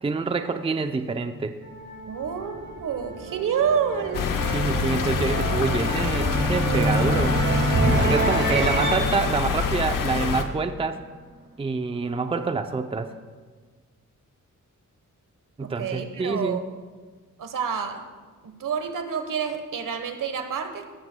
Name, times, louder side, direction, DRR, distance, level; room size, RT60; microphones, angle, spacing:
voice 1, 0.0-1.6 4.5-7.5 8.0-11.0 11.6-13.1 15.6-16.6, right 4 dB, 15° right, 8 dB, 0.5 m, -26 dB
sound 1, 1.6-10.6, right 2 dB, 35° right, 1.7 m, -27 dB
voice 2, 2.0-4.3 15.6-16.7 17.4-18.1 18.4-20.9, right 7 dB, 80° right, 8 dB, 1.2 m, -28 dB
sound 2, 4.1-10.4, left 6 dB, 80° left, 0.9 m, -26 dB
17.5 x 14.0 x 2.2 m, 1.4 s
wide cardioid pair, 110°, 32 cm